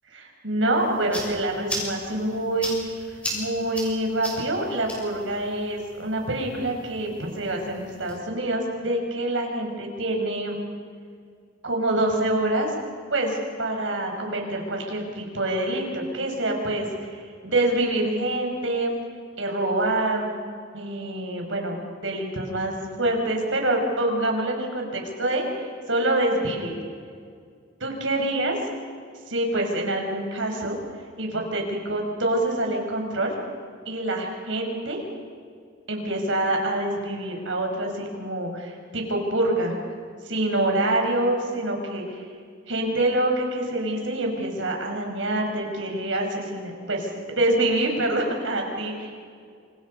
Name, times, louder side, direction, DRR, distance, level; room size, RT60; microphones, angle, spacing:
voice 1, 0.1-10.6 11.6-12.7 13.1-16.9 17.1-18.9 19.4-20.3 20.7-21.8 22.0-26.8 27.8-28.6 29.3-30.8 31.2-33.3 33.9-35.0 35.9-39.8 40.2-42.2 42.7-49.2, right 1 dB, 85° right, 2 dB, 5.7 m, -26 dB
sound 1, 0.7-8.2, equal, 5° left, 6.8 m, -37 dB
28.0 x 25.5 x 5.5 m, 2.2 s
head